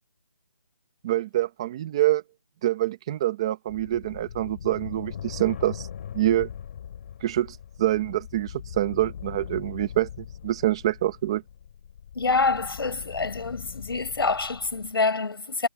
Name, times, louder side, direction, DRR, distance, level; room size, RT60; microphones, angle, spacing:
voice 1, 1.0-2.2 2.6-5.9 6.1-6.5 7.2-11.4, right 14 dB, 10° right, 0.7 m, -26 dB
sound 1, 3.7-14.9, left 9 dB, 25° left, 2.9 m, -41 dB
voice 2, 12.1-15.7, left 4 dB, 65° left, 6.1 m, -26 dB
hypercardioid pair, 175°, 13 cm